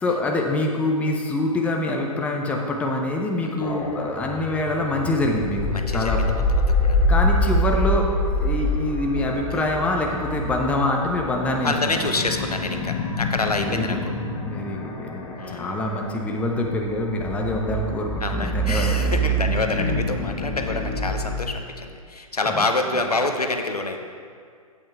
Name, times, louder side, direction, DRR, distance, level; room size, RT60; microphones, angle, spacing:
voice 1, 0.0-6.3 7.1-8.1 8.4-12.0 13.5-14.0 14.4-19.1 19.8-20.0 22.5-22.6, left 1 dB, 5° left, 1 dB, 0.6 m, -25 dB
sound 1, 3.6-21.4, equal, 20° left, 1.0 m, -26 dB
voice 2, 5.7-7.1 9.2-10.4 11.6-14.0 15.4-15.8 18.2-24.0, left 3 dB, 85° left, 5 dB, 0.8 m, -27 dB
8.6 x 8.3 x 3.5 m, 2.1 s
figure-of-eight pair, 120°, 19 cm